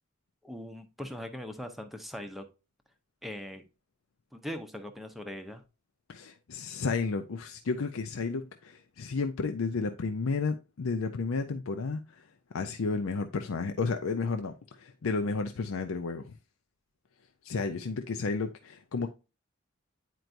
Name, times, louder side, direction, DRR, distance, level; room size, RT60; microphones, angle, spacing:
voice 1, 0.4-2.4 3.2-3.6 4.3-5.6, left 1 dB, ahead, 0.6 m, -40 dB
voice 2, 6.1-12.2 12.5-16.4 17.4-19.1, left 4 dB, 75° left, 0.5 m, -32 dB
9.2 x 4.5 x 2.6 m
head